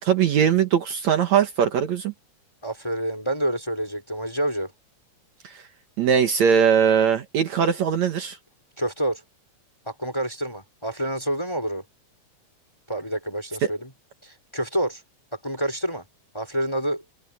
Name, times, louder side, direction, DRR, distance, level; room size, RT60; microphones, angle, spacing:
voice 1, 0.0-2.1 5.4-5.6 6.0-8.4 13.6-13.7, right 8 dB, 65° right, 2.4 m, -20 dB
voice 2, 2.6-4.7 8.8-9.2 9.9-11.8 12.9-13.9 14.2-15.0 15.4-16.0 16.3-17.0, right 1 dB, 10° left, 3.0 m, -28 dB
omnidirectional pair, 3.8 m